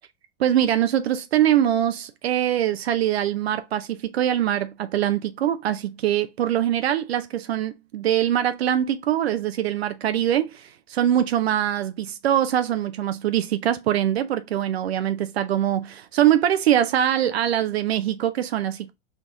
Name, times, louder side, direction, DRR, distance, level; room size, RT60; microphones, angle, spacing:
voice 1, 0.4-18.9, right 11 dB, 75° right, 0.6 m, -23 dB
4.5 x 3.5 x 2.5 m
hypercardioid pair, 110°, 32 cm